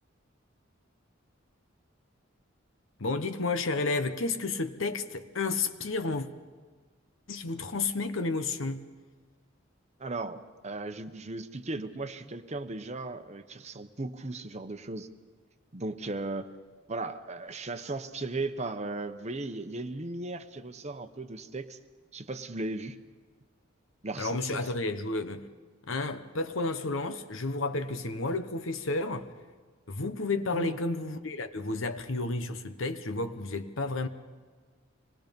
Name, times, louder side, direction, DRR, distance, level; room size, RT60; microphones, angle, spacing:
voice 1, 3.0-6.3 7.3-8.9 24.2-25.5 25.9-29.3 29.9-34.1, left 3 dB, 75° left, 1.1 m, -31 dB
voice 2, 10.0-15.1 15.7-16.5 16.9-21.8 22.1-23.0 24.0-24.7 30.5-30.8, right 2 dB, 35° right, 0.9 m, -36 dB
25.5 x 20.0 x 5.3 m
head